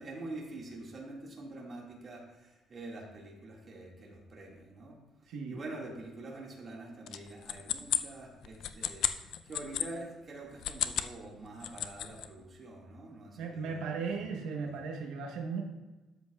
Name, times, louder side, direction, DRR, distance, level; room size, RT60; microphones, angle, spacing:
voice 1, 0.0-5.0 5.2-14.2, right 2 dB, 25° right, -3 dB, 1.9 m, -46 dB
sound 1, 7.1-9.9 10.5-11.2 11.5-12.3, left 11 dB, 55° left, 0.4 m, -33 dB
voice 2, 13.4-15.6, right 5 dB, 85° right, 2 dB, 1.0 m, -36 dB
12.5 x 7.9 x 2.3 m, 1.1 s
cardioid pair, 175°, 0 cm